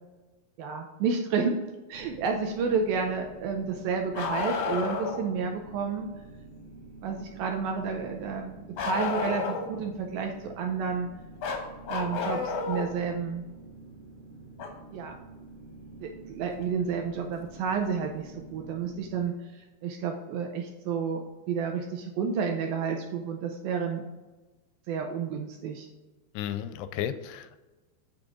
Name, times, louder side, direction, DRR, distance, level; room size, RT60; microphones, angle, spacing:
voice 1, 0.6-1.6 1.9-6.1 7.0-11.1 11.9-13.4 14.9-15.2 16.0-21.2 21.5-24.1 24.9-25.9, right 5 dB, 75° right, 3 dB, 2.2 m, -31 dB
sound 1, 1.9-19.2, right 2 dB, 55° right, 1.8 m, -48 dB
Bark, 4.1-5.2 8.8-9.8 11.4-12.9 14.6-14.7 16.6-16.7 17.8-17.9, left 5 dB, 65° left, 2.2 m, -31 dB
voice 2, 26.4-27.7, left 10 dB, 85° left, 11 dB, 2.5 m, -34 dB
8.9 x 6.1 x 3.7 m, 1.2 s
omnidirectional pair, 4.8 m